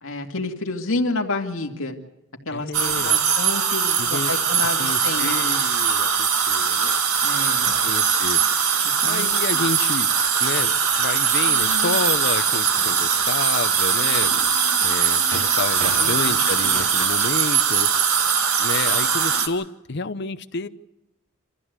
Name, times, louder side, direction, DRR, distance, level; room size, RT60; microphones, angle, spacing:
voice 1, 0.0-1.9 2.5-5.6 7.2-7.8 9.0-9.6 16.0-16.3 16.6-16.7, left 2 dB, 70° left, 2.3 m, -29 dB
voice 2, 2.5-3.2 4.0-4.4 4.8-7.0 7.8-8.4 9.0-10.1 10.4-14.3 14.8-17.9 18.6-20.7, left 4 dB, 50° left, 0.8 m, -29 dB
sound 1, 2.7-19.5, right 7 dB, 90° right, 1.9 m, -21 dB
26.0 x 14.5 x 8.2 m
head